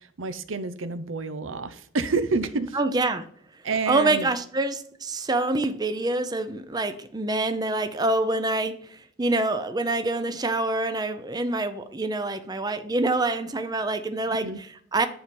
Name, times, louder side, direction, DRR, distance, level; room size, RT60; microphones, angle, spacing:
voice 1, 0.2-2.8 3.6-4.3 14.3-14.6, right 4 dB, 90° right, 11 dB, 0.8 m, -28 dB
voice 2, 2.7-3.3 3.9-15.1, right 2 dB, 20° right, 9 dB, 0.6 m, -26 dB
10.5 x 4.4 x 5.3 m, 0.62 s
head